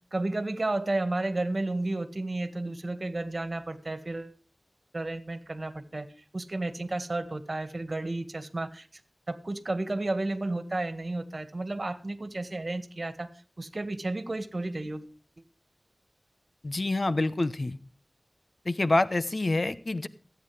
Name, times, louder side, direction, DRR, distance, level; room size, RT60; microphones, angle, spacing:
voice 1, 0.1-4.4 4.9-6.1 6.3-9.0 9.3-13.3 13.6-15.1, right 2 dB, 50° right, 10 dB, 1.8 m, -32 dB
voice 2, 16.6-17.8 18.6-20.1, left 2 dB, 55° left, 13 dB, 0.9 m, -27 dB
22.0 x 9.1 x 3.4 m, 0.40 s
wide cardioid pair, 45°, 0 cm